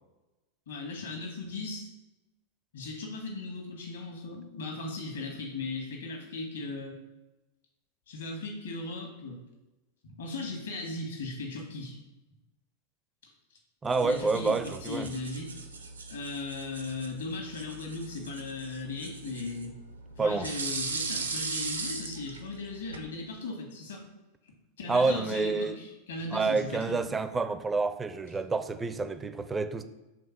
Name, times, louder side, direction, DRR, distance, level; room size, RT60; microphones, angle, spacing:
voice 1, 0.7-1.9 2.7-7.0 8.1-9.4 10.0-12.0 13.2-13.3 14.0-15.5 16.1-19.7 20.2-24.0 24.8-27.0, left 3 dB, 65° left, 2 dB, 1.6 m, -37 dB
voice 2, 13.8-15.1 20.2-20.5 24.9-25.8 26.3-29.8, right 4 dB, 15° right, 9 dB, 0.5 m, -28 dB
sound 1, 13.8-23.1, right 4 dB, 75° right, 0.7 m, -39 dB
5.2 x 3.7 x 5.8 m, 1.0 s
figure-of-eight pair, 90°, 0 cm